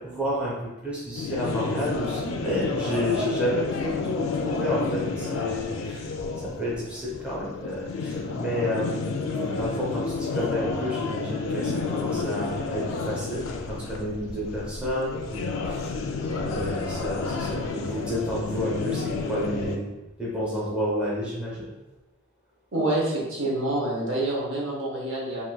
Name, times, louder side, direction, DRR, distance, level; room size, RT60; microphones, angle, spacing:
voice 1, 0.0-6.1 6.4-9.1 9.6-16.0 16.4-19.8 20.2-21.7, equal, 5° right, -7 dB, 0.6 m, -30 dB
sound 1, 1.1-19.8, left 4 dB, 80° left, 0.4 m, -30 dB
voice 2, 22.7-25.4, right 1 dB, 70° right, -4 dB, 0.9 m, -27 dB
3.8 x 2.5 x 2.2 m, 1.1 s
head